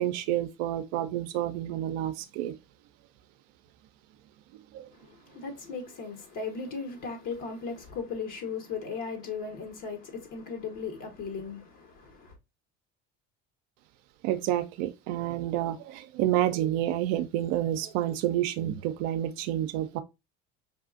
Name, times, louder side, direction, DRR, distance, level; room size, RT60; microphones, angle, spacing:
voice 1, 0.0-2.6 4.7-4.9 14.2-20.0, right 12 dB, 70° right, 0.5 m, -29 dB
voice 2, 4.9-12.3, left 5 dB, 60° left, 1.2 m, -37 dB
5.4 x 2.4 x 2.4 m
supercardioid pair, 85°, 35 cm